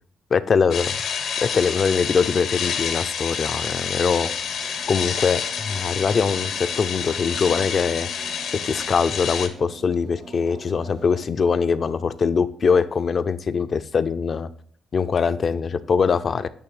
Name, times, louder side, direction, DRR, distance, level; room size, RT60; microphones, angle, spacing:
voice 1, 0.3-0.9 1.4-4.3 4.9-8.1 8.6-14.5 14.9-16.5, left 5 dB, 45° left, 13 dB, 0.4 m, -22 dB
sound 1, 0.7-9.5, left 7 dB, 75° left, 0.9 m, -28 dB
sound 2, 3.9-11.2, right 2 dB, 85° right, 3.1 m, -45 dB
8.8 x 3.2 x 4.8 m, 0.62 s
cardioid pair, 90°, 0 cm